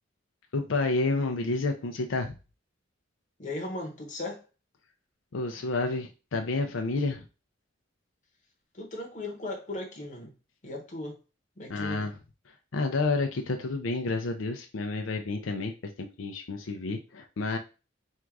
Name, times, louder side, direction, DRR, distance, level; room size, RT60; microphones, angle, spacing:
voice 1, 0.5-2.3 5.3-7.3 11.7-12.1 12.7-15.7 16.0-17.6, left 3 dB, 90° left, 0.5 m, -30 dB
voice 2, 3.4-4.4 8.7-10.3 10.6-11.2 11.6-12.1, left 2 dB, 40° left, 0.9 m, -37 dB
3.6 x 2.5 x 4.6 m
head